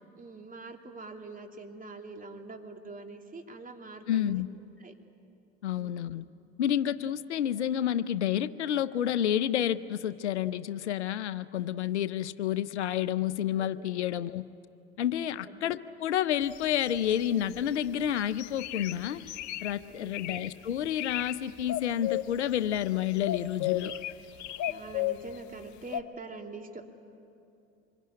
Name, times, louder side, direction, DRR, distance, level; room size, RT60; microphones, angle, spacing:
voice 1, 0.2-4.4 4.8-4.9 5.7-5.9 13.6-13.9 15.3-15.6 20.0-20.4 24.6-26.8, right 3 dB, 25° right, 4 dB, 2.8 m, -45 dB
voice 2, 4.1-4.5 5.6-6.2 6.6-14.4 15.0-19.2 19.6-23.9, left 10 dB, 85° left, 15 dB, 0.6 m, -29 dB
sound 1, 16.5-17.7 18.1-19.7 20.1-20.5 20.8-21.3 21.6-22.9 23.2-25.3 25.9-26.0, left 14 dB, 60° left, 1.1 m, -34 dB
25.5 x 22.0 x 9.9 m, 2.7 s
hypercardioid pair, 65°, 33 cm